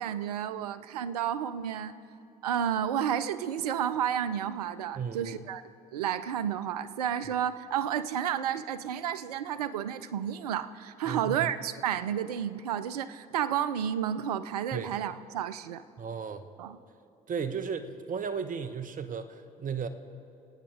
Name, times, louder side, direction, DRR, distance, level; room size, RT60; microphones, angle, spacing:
voice 1, 0.0-1.9 2.4-5.6 5.9-15.8 16.6-16.8, right 9 dB, 85° right, 15 dB, 0.5 m, -31 dB
voice 2, 5.0-5.4 11.0-11.5 14.7-14.9 16.0-16.5 17.3-19.9, right 6 dB, 45° right, 11 dB, 1.1 m, -35 dB
26.0 x 8.8 x 4.7 m, 2.5 s
hypercardioid pair, 55°, 19 cm